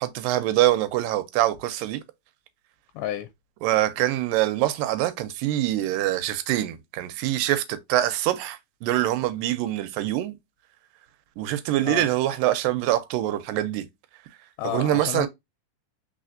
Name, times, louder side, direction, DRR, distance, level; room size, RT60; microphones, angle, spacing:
voice 1, 0.0-2.0 3.6-10.4 11.4-13.9 14.6-15.3, right 14 dB, 85° right, 2.3 m, -24 dB
voice 2, 3.0-3.3 11.8-12.1 14.6-15.3, left 13 dB, 80° left, 2.1 m, -30 dB
4.2 x 4.2 x 2.5 m
omnidirectional pair, 4.0 m